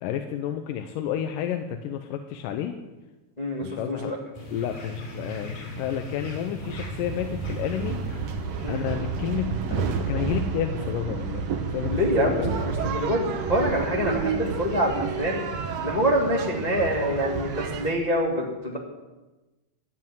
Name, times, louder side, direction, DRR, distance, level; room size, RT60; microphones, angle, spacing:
voice 1, 0.0-2.7 3.6-4.2 4.5-8.0 8.7-11.4 11.7-12.5, left 9 dB, 80° left, 7 dB, 2.3 m, -30 dB
voice 2, 3.4-4.2 8.6-8.8 11.9-13.2 13.5-15.4 15.8-18.8, equal, 25° left, -1 dB, 0.8 m, -25 dB
sound 1, 4.3-9.4, left 2 dB, 65° left, 4.2 m, -38 dB
sound 2, 6.6-17.9, right 5 dB, 65° right, 1.9 m, -30 dB
13.0 x 7.9 x 9.2 m, 1.1 s
omnidirectional pair, 3.9 m